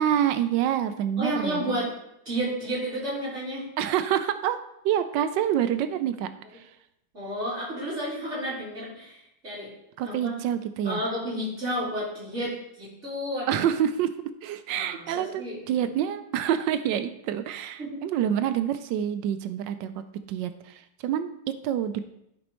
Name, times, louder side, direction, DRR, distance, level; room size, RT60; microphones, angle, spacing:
voice 1, 0.0-1.8 3.8-4.6 4.8-6.7 10.0-11.0 13.5-14.1 14.4-22.0, right 10 dB, 90° right, 10 dB, 1.3 m, -27 dB
voice 2, 1.2-1.9 2.3-3.7 7.1-9.7 10.0-10.3 10.8-13.5 14.7-15.6 17.8-18.0, equal, 40° right, -8 dB, 3.5 m, -31 dB
12.0 x 5.2 x 3.0 m, 0.79 s
omnidirectional pair, 1.9 m